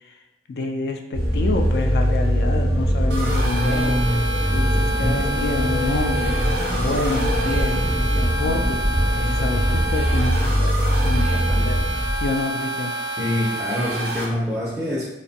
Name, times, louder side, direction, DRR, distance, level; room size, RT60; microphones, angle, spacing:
voice 1, 0.5-4.0 4.5-6.3 6.7-7.8 8.1-8.8 9.2-10.7 11.0-11.8 12.2-12.9, left 3 dB, 60° left, 4 dB, 0.3 m, -27 dB
sound 1, 1.1-12.4, equal, 85° left, 0.9 m, -22 dB
sound 2, 2.4-10.0, equal, 30° left, 0.7 m, -31 dB
sound 3, 3.1-14.2, right 2 dB, 65° right, 0.5 m, -29 dB
voice 2, 13.2-15.1, left 1 dB, 5° right, -7 dB, 0.4 m, -25 dB
2.5 x 2.1 x 2.6 m, 0.97 s
head